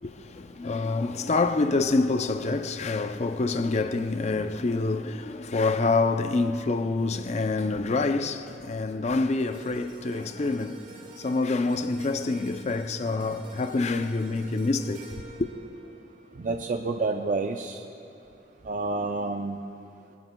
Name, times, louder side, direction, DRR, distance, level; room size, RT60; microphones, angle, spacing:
voice 1, 0.0-15.5, left 3 dB, 40° left, 0.5 m, -27 dB
sound 1, 9.2-17.5 18.0-18.2, right 3 dB, 65° right, 2.5 m, -48 dB
voice 2, 16.4-17.8 18.7-19.6, right 3 dB, 50° right, 0.5 m, -29 dB
21.0 x 20.0 x 2.3 m
head